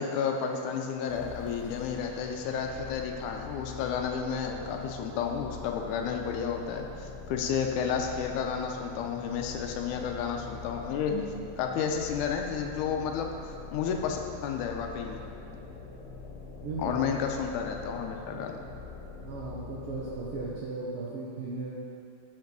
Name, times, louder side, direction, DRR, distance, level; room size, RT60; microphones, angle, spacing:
voice 1, 0.0-11.3 11.6-13.3 13.7-15.2 16.8-18.6, left 6 dB, 85° left, 3 dB, 2.0 m, -31 dB
sound 1, 1.1-20.7, left 5 dB, 65° left, 2.0 m, -44 dB
voice 2, 16.6-17.1 19.2-21.7, right 3 dB, 75° right, -6 dB, 1.3 m, -36 dB
6.2 x 5.9 x 5.2 m, 2.4 s
omnidirectional pair, 3.6 m